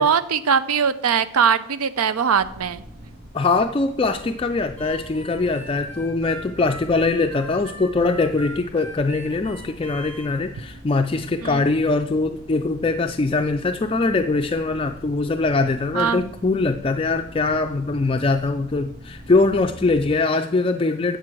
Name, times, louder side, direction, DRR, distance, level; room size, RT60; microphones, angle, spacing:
voice 1, 0.0-2.8 11.4-11.6 15.9-16.2, right 7 dB, 90° right, 14 dB, 0.6 m, -21 dB
sound 1, 2.4-20.2, equal, 45° right, 1.8 m, -43 dB
voice 2, 3.3-21.2, left 3 dB, 25° left, 6 dB, 0.3 m, -22 dB
Harmonica, 4.8-10.3, right 1 dB, 65° right, 2.0 m, -41 dB
7.6 x 6.9 x 7.6 m, 0.74 s
head